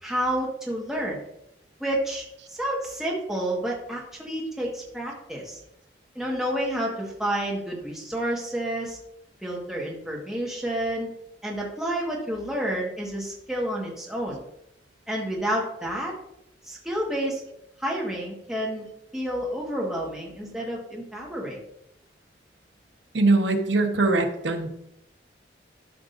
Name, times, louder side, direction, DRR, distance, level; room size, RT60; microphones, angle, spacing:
voice 1, 0.0-1.2 1.8-5.6 6.1-9.0 9.4-11.1 11.4-14.4 15.1-16.1 16.7-17.4 17.8-18.9 19.1-21.6, right 1 dB, 5° right, -3 dB, 1.5 m, -29 dB
voice 2, 23.1-24.7, right 2 dB, 80° right, 5 dB, 1.1 m, -22 dB
12.5 x 6.0 x 2.6 m, 0.78 s
head